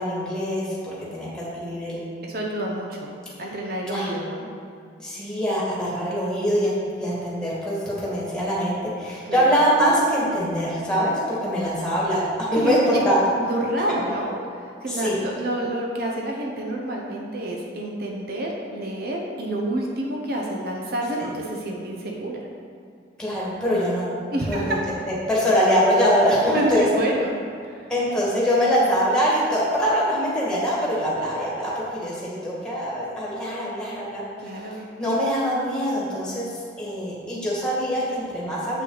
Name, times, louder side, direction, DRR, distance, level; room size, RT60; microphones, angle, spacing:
voice 1, 0.0-2.0 3.9-4.1 5.0-13.2 14.9-15.2 23.2-24.1 24.5-24.8 25.1-26.9 27.9-34.2 35.0-36.5 36.8-38.8, equal, 5° left, -7 dB, 1.8 m, -23 dB
voice 2, 2.2-3.1 3.4-4.4 9.3-9.4 12.6-12.8 13.3-14.3 14.6-22.4 24.3-24.8 26.5-27.3 27.6-27.9 34.4-34.8, right 1 dB, 50° right, -1 dB, 0.9 m, -28 dB
7.8 x 6.1 x 4.0 m, 2.4 s
head